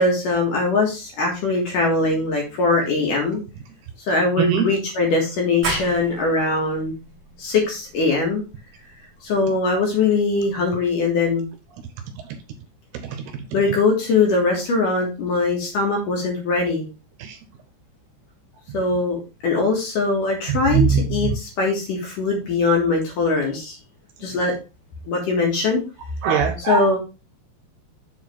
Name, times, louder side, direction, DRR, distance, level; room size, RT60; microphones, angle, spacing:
voice 1, 0.0-3.4 4.1-6.9 7.4-8.4 9.2-11.4 13.5-16.9 18.7-23.8 24.2-24.6 25.1-25.8 26.7-27.0, left 3 dB, 60° left, 0 dB, 2.7 m, -21 dB
sound 1, 5.6-11.0, right 3 dB, 55° right, 1.6 m, -35 dB
voice 2, 13.1-13.4 17.2-17.4 20.5-21.3 26.2-27.0, right 6 dB, 75° right, 7 dB, 2.7 m, -21 dB
7.4 x 4.5 x 4.4 m, 0.29 s
omnidirectional pair, 5.1 m